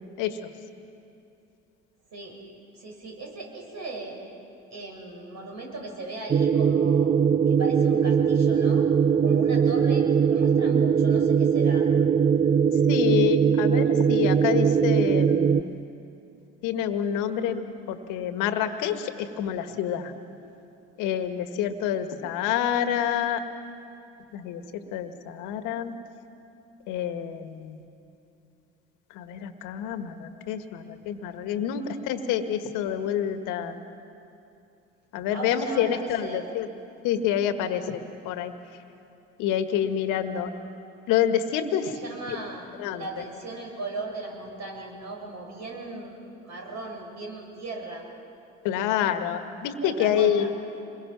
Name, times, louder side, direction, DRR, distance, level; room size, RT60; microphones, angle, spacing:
voice 1, 2.7-4.2 4.7-7.1 7.5-11.9 35.3-36.4 41.8-42.7 42.9-46.2 46.4-48.0 49.8-50.5, right 2 dB, 60° right, 0 dB, 6.8 m, -37 dB
sound 1, 6.3-15.6, right 7 dB, 25° right, 0.5 m, -21 dB
voice 2, 12.9-15.8 16.6-17.6 17.9-20.1 21.0-23.4 24.3-25.9 26.9-27.8 29.1-33.7 35.1-36.7 37.0-38.5 39.4-40.5 41.1-41.9 42.8-43.0 48.6-50.6, left 9 dB, 70° left, 9 dB, 1.5 m, -27 dB
27.5 x 22.0 x 6.0 m, 2.7 s
hypercardioid pair, 50°, 32 cm